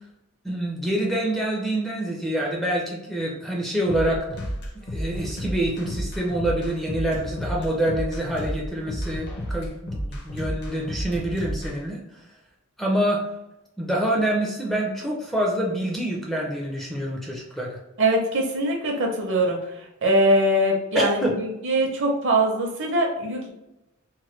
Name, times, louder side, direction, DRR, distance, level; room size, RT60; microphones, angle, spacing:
voice 1, 0.4-4.3 4.9-12.0 12.8-13.2 13.8-17.8 20.9-21.4, right 1 dB, ahead, -2 dB, 0.4 m, -26 dB
sound 1, 3.9-11.7, equal, 50° left, 0.7 m, -31 dB
voice 2, 18.0-19.6 20.0-23.5, right 1 dB, 55° right, 1 dB, 0.7 m, -22 dB
3.0 x 2.1 x 3.1 m, 0.93 s
head